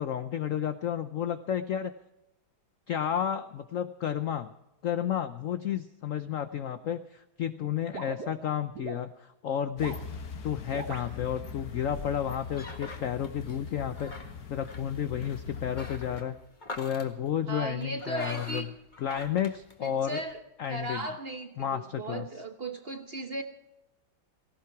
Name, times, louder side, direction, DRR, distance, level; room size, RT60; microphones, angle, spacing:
voice 1, 0.0-1.9 2.9-4.5 4.8-10.0 10.4-16.4 16.8-18.7 19.0-20.2 20.6-21.1 21.6-22.3, left 9 dB, 70° left, 11 dB, 0.7 m, -32 dB
sound 1, 7.9-9.0 9.7-10.0 10.7-11.1, right 6 dB, 60° right, 1.5 m, -41 dB
sound 2, 9.8-16.2, left 6 dB, 50° left, 1.6 m, -41 dB
sound 3, 11.4-20.4, left 2 dB, 25° left, 1.7 m, -46 dB
voice 2, 15.6-15.9 17.5-18.7 19.8-23.4, right 2 dB, 40° right, 7 dB, 0.9 m, -37 dB
18.0 x 16.5 x 4.7 m, 0.94 s
omnidirectional pair, 2.1 m